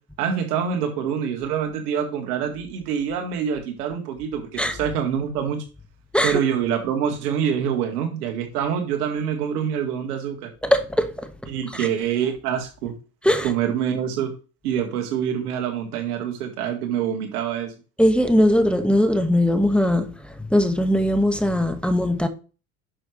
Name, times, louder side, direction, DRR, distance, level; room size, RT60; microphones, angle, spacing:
voice 1, 0.2-5.6 6.2-10.5 11.5-12.9 13.4-14.3 14.6-17.7, right 8 dB, 85° right, 2.0 m, -25 dB
voice 2, 10.6-11.1 13.2-13.5 18.0-20.1 20.5-22.3, equal, ahead, 1.6 m, -19 dB
11.0 x 6.5 x 3.2 m
hypercardioid pair, 70°, 45 cm